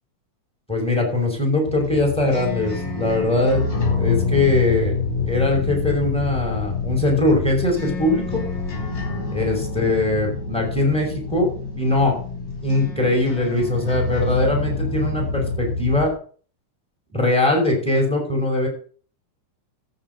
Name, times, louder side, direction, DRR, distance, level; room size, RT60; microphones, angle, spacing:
voice 1, 0.7-3.6 4.0-4.9 5.3-8.4 9.3-12.1 12.6-16.1 17.1-18.7, left 2 dB, ahead, 1 dB, 5.4 m, -21 dB
sound 1, 1.6-16.1, left 4 dB, 35° left, 5.7 m, -27 dB
14.5 x 5.3 x 7.9 m, 0.43 s
omnidirectional pair, 3.6 m